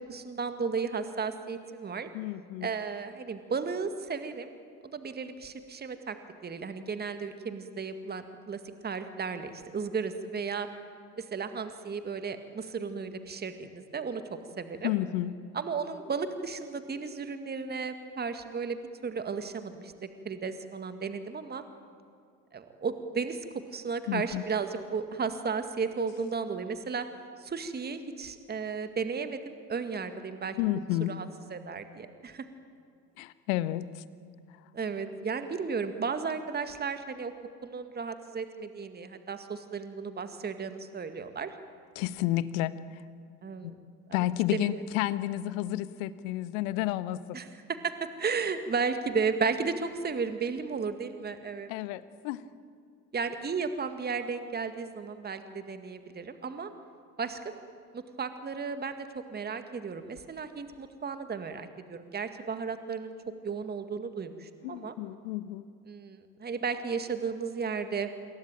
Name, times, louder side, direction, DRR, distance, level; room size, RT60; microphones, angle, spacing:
voice 1, 0.1-2.1 2.6-4.5 4.8-6.2 6.4-10.7 11.2-14.2 14.6-14.9 15.5-19.9 20.3-21.6 22.5-23.4 23.7-27.1 27.4-30.6 31.1-31.3 31.5-32.5 34.7-37.3 37.6-41.5 43.4-43.7 44.5-44.7 47.3-47.5 47.8-47.9 48.2-51.7 53.1-56.7 57.2-57.6 57.9-63.1 63.4-64.9 65.9-68.1, right 5 dB, 20° right, 8 dB, 2.0 m, -34 dB
voice 2, 2.1-2.7 14.8-15.3 24.1-24.4 30.6-31.1 33.2-34.0 34.5-34.6 41.9-43.1 43.6-43.7 44.1-47.4 51.7-52.4 64.6-65.7, left 14 dB, 55° left, 15 dB, 1.3 m, -31 dB
sound 1, 12.7-13.2 13.9-14.4 14.6-15.1 15.8-16.3 16.8-17.3, left 2 dB, 10° left, 1.6 m, -53 dB
27.0 x 22.5 x 9.1 m, 2.3 s
figure-of-eight pair, 70°, 47 cm